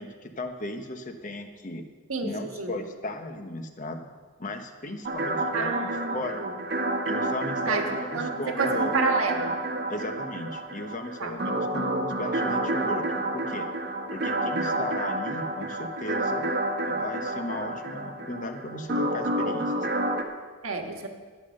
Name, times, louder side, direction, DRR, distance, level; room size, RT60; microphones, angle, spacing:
voice 1, 0.0-1.8 2.2-4.1 4.4-6.4 7.0-9.0 9.9-13.7 14.1-16.5 16.8-19.9, left 1 dB, 35° left, 6 dB, 1.0 m, -36 dB
voice 2, 2.1-2.7 5.5-6.5 7.7-9.6 11.2-11.3 20.6-21.1, right 4 dB, 70° right, 3 dB, 1.5 m, -30 dB
sound 1, 5.1-20.2, right 1 dB, 50° right, 1.2 m, -29 dB
12.5 x 9.6 x 6.5 m, 1.5 s
head